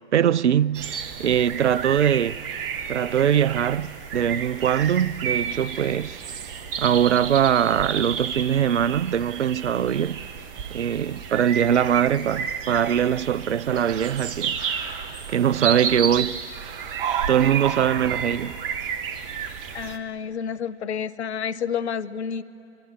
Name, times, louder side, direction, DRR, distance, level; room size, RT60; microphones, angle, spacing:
voice 1, 0.1-2.4 2.9-6.2 6.8-10.2 10.7-14.6 15.3-16.4 17.3-18.6, right 9 dB, 85° right, 0.5 m, -22 dB
sound 1, 0.7-20.0, right 7 dB, 50° right, 1.7 m, -31 dB
voice 2, 19.7-22.4, left 7 dB, 75° left, 1.0 m, -29 dB
24.5 x 23.5 x 10.0 m
figure-of-eight pair, 105°, 34 cm